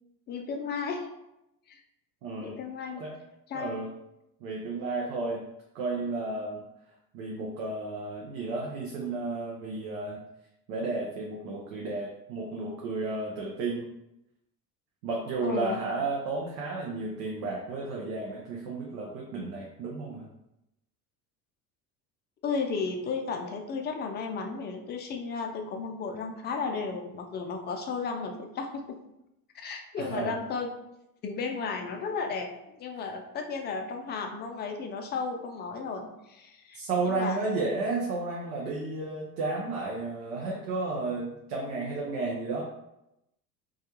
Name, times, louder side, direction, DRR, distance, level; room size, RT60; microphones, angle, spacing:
voice 1, 0.3-1.1 1.7-1.8 2.4-3.0 3.5-3.7 15.4-15.8 22.4-29.0 29.5-30.7 31.2-36.8 37.0-37.5, left 4 dB, 25° left, 4 dB, 0.3 m, -34 dB
voice 2, 2.2-2.6 3.0-3.1 3.5-3.9 4.4-5.4 5.7-6.6 7.1-10.2 10.7-13.9 15.0-20.3 30.0-30.4 36.7-42.6, right 3 dB, 75° right, -2 dB, 0.7 m, -32 dB
2.3 x 2.2 x 2.9 m, 0.87 s
hypercardioid pair, 65°, 48 cm